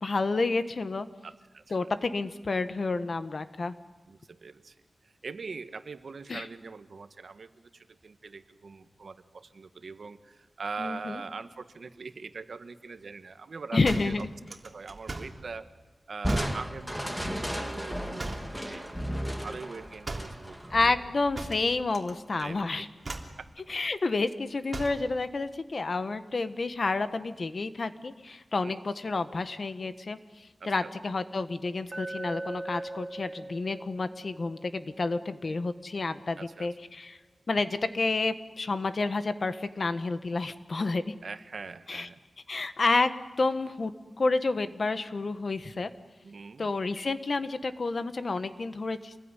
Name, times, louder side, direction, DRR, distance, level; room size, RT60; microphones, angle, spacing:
voice 1, 0.0-1.1 1.7-3.7 6.3-6.4 10.8-11.2 13.7-14.3 20.7-22.9 23.7-30.2 30.6-37.2 37.5-41.0 41.9-42.1 42.5-43.1 43.4-43.9 44.2-45.9 46.6-49.2, left 3 dB, 55° left, 10 dB, 1.4 m, -29 dB
voice 2, 1.2-1.7 4.1-4.8 5.2-14.2 14.6-15.7 16.1-19.0 19.4-21.1 22.4-22.9 23.4-23.5 28.6-28.8 30.6-31.2 36.4-36.7 41.2-42.2 46.2-46.7, right 4 dB, 70° right, 10 dB, 1.4 m, -42 dB
sound 1, 13.8-15.4 16.2-16.6 18.2-18.6 20.0-20.4 21.3-22.1 22.4-22.7 23.0-23.4 24.7-25.1, right 2 dB, 45° right, 3.2 m, -38 dB
Crushing, 16.2-21.6, equal, 5° left, 2.2 m, -34 dB
Glass, 31.9-36.0, right 2 dB, 30° right, 1.2 m, -41 dB
27.0 x 21.0 x 9.9 m, 1.2 s
wide cardioid pair, 95°, 0 cm